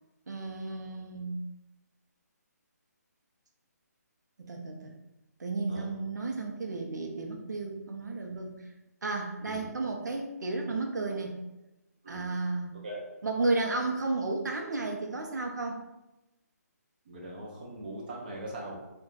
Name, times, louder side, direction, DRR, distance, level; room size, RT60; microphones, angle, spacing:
voice 1, 0.3-1.3 4.4-4.9 5.4-8.5 9.0-11.4 12.1-12.7 13.2-15.8, right 3 dB, 85° right, 2 dB, 0.6 m, -33 dB
voice 2, 17.1-18.8, right 1 dB, 30° right, -3 dB, 0.5 m, -40 dB
2.5 x 2.2 x 3.7 m, 0.99 s
hypercardioid pair, 175°, 9 cm